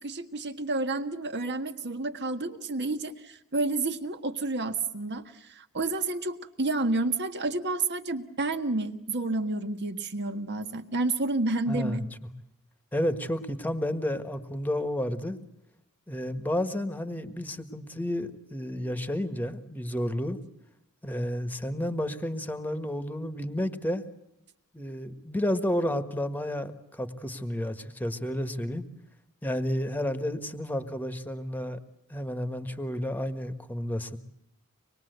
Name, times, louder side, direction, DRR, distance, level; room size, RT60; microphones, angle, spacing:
voice 1, 0.0-12.0, right 2 dB, 50° right, 8 dB, 1.6 m, -30 dB
voice 2, 11.7-12.1 12.9-15.4 16.1-20.4 21.0-24.0 24.7-28.8 29.4-31.8 32.1-34.2, left 1 dB, 10° left, 10 dB, 1.5 m, -31 dB
25.0 x 21.0 x 8.1 m, 0.85 s
head